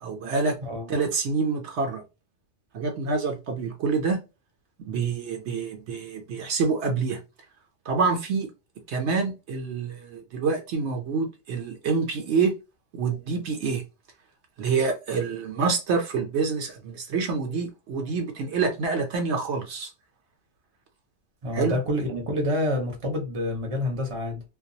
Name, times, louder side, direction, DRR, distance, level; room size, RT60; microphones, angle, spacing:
voice 1, 0.0-0.6 0.9-2.0 2.7-4.2 4.9-7.2 7.9-8.5 8.9-12.5 12.9-13.8 14.6-19.9 21.5-21.7, right 4 dB, 70° right, 0.9 m, -27 dB
voice 2, 0.6-0.9 21.4-24.4, left 1 dB, 30° right, 0.7 m, -28 dB
2.3 x 2.3 x 2.6 m
omnidirectional pair, 1.2 m